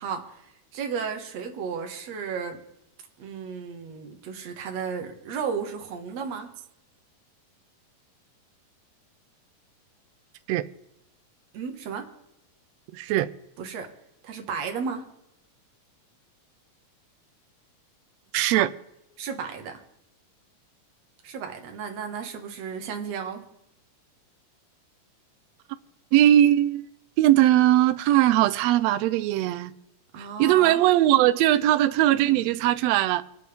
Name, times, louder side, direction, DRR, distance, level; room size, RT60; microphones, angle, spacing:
voice 1, 0.0-2.6 3.2-6.5 11.5-12.1 13.6-13.9 14.2-15.1 19.2-19.8 21.2-23.4 30.1-30.8, right 6 dB, 60° right, 2.5 m, -34 dB
voice 2, 12.9-13.3 18.3-18.7 26.1-26.9 27.2-29.7 30.4-33.2, right 13 dB, 85° right, 1.5 m, -20 dB
26.5 x 9.4 x 3.4 m
omnidirectional pair, 3.7 m